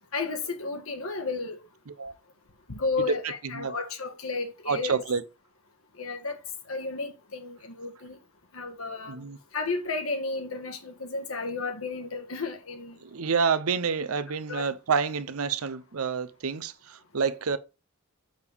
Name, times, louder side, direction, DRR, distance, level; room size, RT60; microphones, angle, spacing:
voice 1, 0.1-1.6 2.7-5.0 6.0-6.4 6.7-8.2 8.5-9.1 9.5-13.0 14.5-14.6, left 3 dB, 75° left, 1.5 m, -32 dB
voice 2, 4.7-5.2 9.1-9.4 13.0-17.6, right 5 dB, 85° right, 0.6 m, -28 dB
7.1 x 6.4 x 3.4 m
head